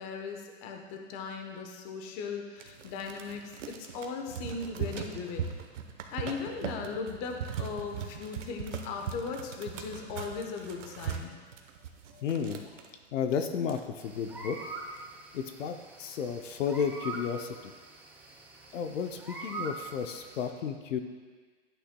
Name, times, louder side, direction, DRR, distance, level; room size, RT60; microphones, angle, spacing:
voice 1, 0.0-5.5 6.1-11.4 12.1-12.3, left 5 dB, 35° left, 3 dB, 0.9 m, -38 dB
sound 1, 2.6-12.9 13.3-13.4 13.6-14.3 14.7-15.1, right 8 dB, 80° right, 0.9 m, -39 dB
voice 2, 12.2-12.6 13.1-14.6 15.3-17.7 18.7-21.0, left 7 dB, 90° left, 7 dB, 0.7 m, -33 dB
sound 2, 14.0-20.5, right 3 dB, 5° right, 0.6 m, -44 dB
10.0 x 8.9 x 2.2 m, 1.5 s
hypercardioid pair, 140°, 37 cm